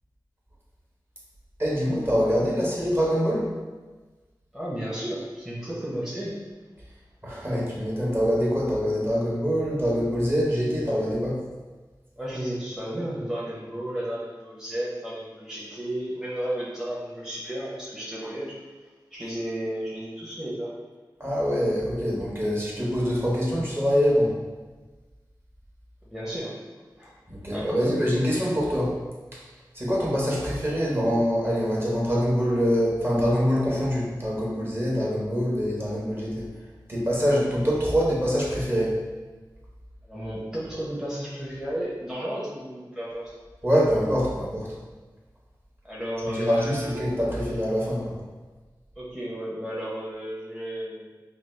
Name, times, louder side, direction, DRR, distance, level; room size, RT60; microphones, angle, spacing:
voice 1, 1.6-3.5 7.2-11.4 21.2-24.3 27.3-28.9 29.3-29.4 29.7-36.5 36.9-38.9 43.6-44.8 46.2-48.2, equal, 30° right, -4 dB, 1.0 m, -24 dB
voice 2, 4.5-6.3 12.2-18.6 19.1-20.7 26.0-26.6 27.0-27.1 27.5-28.0 30.3-30.4 40.0-43.3 45.8-47.0 49.0-51.1, right 1 dB, 5° right, -7 dB, 0.8 m, -33 dB
5.0 x 2.3 x 3.2 m, 1.3 s
wide cardioid pair, 70°, 8 cm